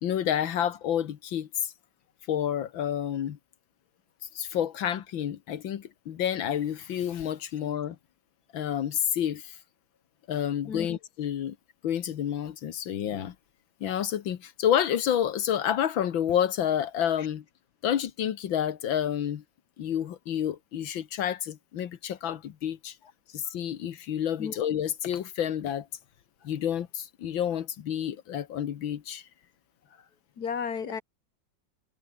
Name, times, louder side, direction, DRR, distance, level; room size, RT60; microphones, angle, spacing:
voice 1, 0.0-1.7 2.3-3.4 4.2-8.0 8.5-9.6 10.3-11.6 11.8-13.3 13.8-17.4 17.8-19.4 19.8-23.0 23.3-25.9 26.4-29.3, left 10 dB, 85° left, 2.0 m, -29 dB
voice 2, 30.4-31.0, left 6 dB, 55° left, 2.6 m, -33 dB
omnidirectional pair, 2.1 m